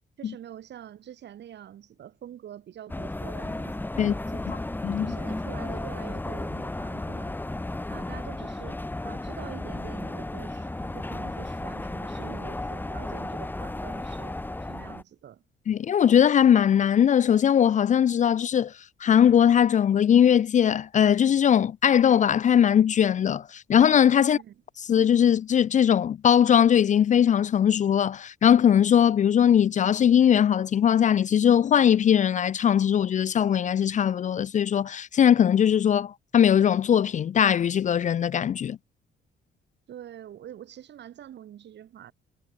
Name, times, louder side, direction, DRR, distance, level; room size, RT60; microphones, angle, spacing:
voice 1, 0.2-4.7 5.0-7.4 7.9-14.4 14.7-15.4 24.2-24.5 39.9-42.1, right 10 dB, 60° right, 1.1 m, -45 dB
sound 1, 2.9-15.0, left 2 dB, 10° left, 1.0 m, -34 dB
voice 2, 4.8-5.1 15.7-18.7 19.0-24.4 24.9-38.8, left 9 dB, 40° left, 0.4 m, -20 dB
cardioid pair, 90°, 20 cm